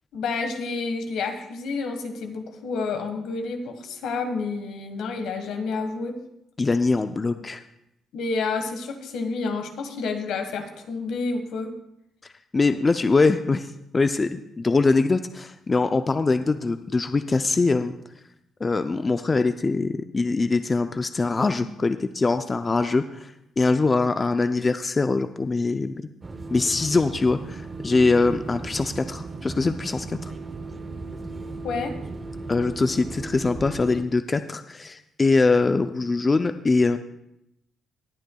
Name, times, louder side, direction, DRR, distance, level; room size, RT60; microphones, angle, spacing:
voice 1, 0.1-6.2 8.1-11.7 31.6-32.0, left 4 dB, 80° left, 6 dB, 1.4 m, -29 dB
voice 2, 6.6-7.6 12.5-17.9 18.6-25.9 26.5-30.3 32.5-37.0, left 3 dB, 30° left, 9 dB, 0.4 m, -23 dB
sound 1, 26.2-34.0, right 3 dB, 25° right, 0.7 m, -36 dB
19.5 x 9.0 x 2.3 m, 0.82 s
cardioid pair, 90°, 0 cm